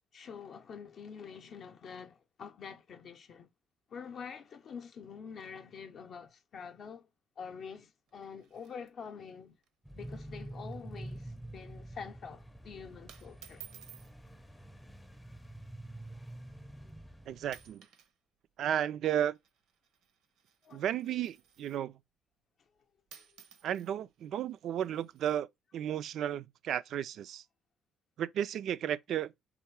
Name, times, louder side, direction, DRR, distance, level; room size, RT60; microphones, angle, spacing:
voice 1, 0.1-3.5 3.9-7.1 7.4-9.6 9.9-13.6 20.6-20.8, left 6 dB, 50° left, 0.5 m, -46 dB
sound 1, 8.1-9.3 9.6-9.7 10.0-10.3 10.6-10.9 11.3-11.6 12.3-12.6 13.1-14.1 15.1-15.4 16.1-16.2 16.9-17.1 17.4-18.1 18.4-21.9 22.8-22.9 23.1-25.4, right 9 dB, 80° right, 0.9 m, -57 dB
sound 2, 9.9-17.7, right 1 dB, 5° left, 0.5 m, -47 dB
voice 2, 17.3-17.9 18.6-19.4 20.7-21.9 23.6-25.5 25.7-27.4 28.2-29.3, right 10 dB, 65° right, 0.3 m, -33 dB
3.8 x 3.0 x 4.6 m
cardioid pair, 130°, 0 cm